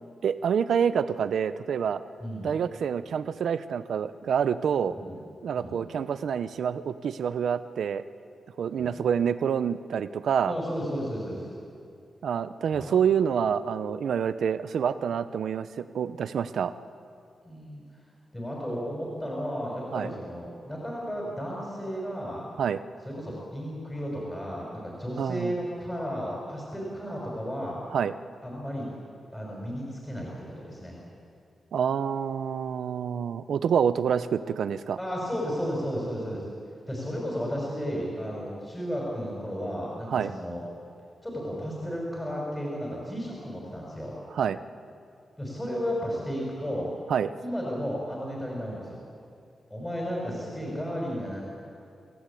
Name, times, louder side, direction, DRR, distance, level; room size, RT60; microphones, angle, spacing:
voice 1, 0.2-2.0 2.4-5.0 5.4-8.0 8.6-10.5 12.2-16.7 19.9-20.1 22.6-22.8 25.2-25.5 27.9-28.1 31.7-35.0 40.1-40.3 44.3-44.6 47.1-47.3, right 7 dB, 80° right, 12 dB, 0.8 m, -27 dB
voice 2, 2.2-2.5 4.9-5.2 5.5-5.8 8.7-8.9 10.5-11.5 12.7-12.9 17.4-18.0 18.3-22.4 23.0-27.8 28.4-28.9 29.3-31.0 35.0-36.5 36.9-40.6 41.2-44.2 45.4-47.0 47.4-49.1 49.7-51.4, equal, 10° left, -3 dB, 5.8 m, -33 dB
28.5 x 16.5 x 8.6 m, 2.5 s
wide cardioid pair, 125°, 0 cm